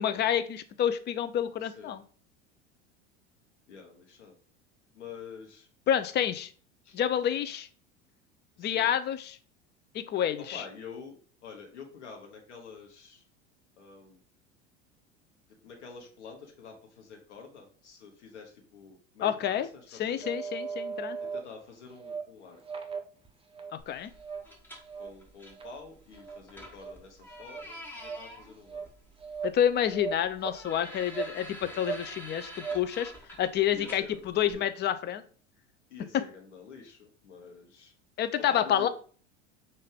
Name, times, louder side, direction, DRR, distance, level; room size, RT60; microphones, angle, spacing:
voice 1, 0.0-2.0 5.9-6.5 6.9-7.7 8.6-9.4 9.9-10.6 19.2-19.7 20.0-21.3 23.9-24.1 29.4-33.1 33.4-35.2 36.1-36.2 38.2-38.9, left 10 dB, 30° left, 11 dB, 0.5 m, -28 dB
voice 2, 1.6-2.0 3.7-4.3 4.9-5.7 6.8-7.0 8.6-8.9 10.5-13.2 13.8-14.2 15.6-19.7 19.9-20.3 21.3-22.6 25.0-28.9 33.7-34.2 34.5-34.6 35.9-37.9 38.4-38.9, left 5 dB, 80° left, 2 dB, 1.0 m, -47 dB
sound 1, 20.2-21.4 21.9-22.2 22.6-23.7 24.2-24.4 24.8-25.1 25.6-25.7 26.2-26.4 26.8-26.9 27.3-27.7 28.0-28.2 28.7-28.9 29.2-29.6 29.9-30.6 31.1-31.3 31.6-32.0 32.3-32.8, right 5 dB, 15° right, 0.7 m, -37 dB
sound 2, 23.8-34.5, equal, 5° left, 1.3 m, -48 dB
5.5 x 2.6 x 3.3 m, 0.43 s
hypercardioid pair, 80°, 34 cm